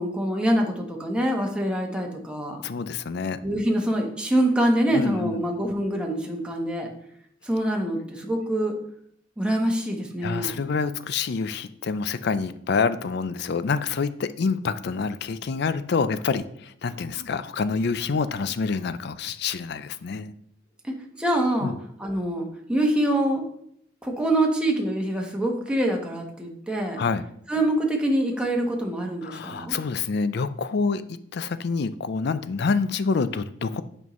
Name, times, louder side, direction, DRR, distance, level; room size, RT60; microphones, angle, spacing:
voice 1, 0.0-2.6 3.4-6.9 7.4-8.7 9.4-10.6 20.8-21.7 22.0-23.4 24.0-27.0 27.5-29.8, right 1 dB, 5° right, 0 dB, 1.1 m, -25 dB
voice 2, 2.6-3.4 4.9-5.4 10.2-20.3 21.6-21.8 27.0-27.2 29.2-33.8, left 5 dB, 60° left, 13 dB, 0.4 m, -27 dB
8.3 x 5.3 x 3.1 m, 0.69 s
head